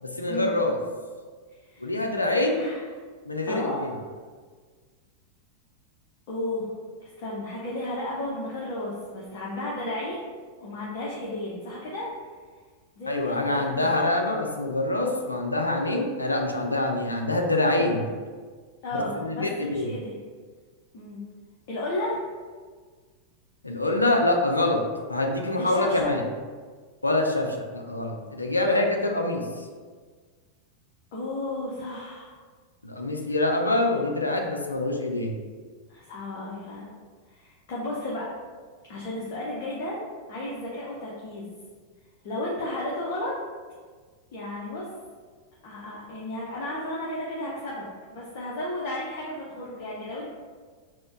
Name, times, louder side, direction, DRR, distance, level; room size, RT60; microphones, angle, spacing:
voice 1, 0.0-0.8 1.8-2.7 3.3-3.9 13.1-18.1 19.2-19.9 23.6-24.8 25.1-26.2 27.0-29.4 32.8-35.3, left 2 dB, 80° left, 2 dB, 0.5 m, -25 dB
voice 2, 1.6-1.9 2.5-2.8 3.5-4.0 6.3-6.7 7.0-10.3 10.6-12.1 13.0-14.0 18.8-20.1 20.9-21.2 21.7-22.2 25.6-26.1 31.1-32.3 35.9-36.9 37.3-38.3 38.9-40.0 40.3-41.6 42.2-43.3 44.3-44.9 45.6-50.3, left 1 dB, 50° left, -5 dB, 0.8 m, -33 dB
4.2 x 2.2 x 4.5 m, 1.5 s
figure-of-eight pair, 90°, 0 cm